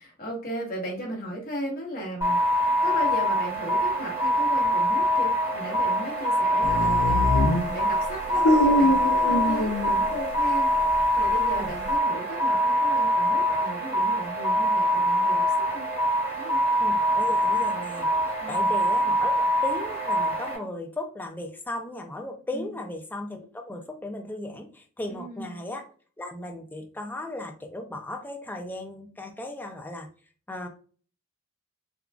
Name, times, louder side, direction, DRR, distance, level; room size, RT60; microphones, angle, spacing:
voice 1, 0.0-2.4 2.8-7.5 7.7-10.7 11.2-15.9 16.4-16.6 18.4-18.7 22.5-22.8 25.1-25.6, equal, 40° left, -1 dB, 1.1 m, -36 dB
sound 1, 2.2-20.6, equal, 10° right, 1.2 m, -24 dB
sound 2, 6.6-10.4 10.8-12.0, left 1 dB, 75° left, 0.4 m, -24 dB
voice 2, 16.8-18.1 18.5-25.9 26.2-30.1 30.5-30.7, left 1 dB, 10° left, 3 dB, 0.4 m, -36 dB
3.6 x 2.3 x 2.2 m, 0.40 s
head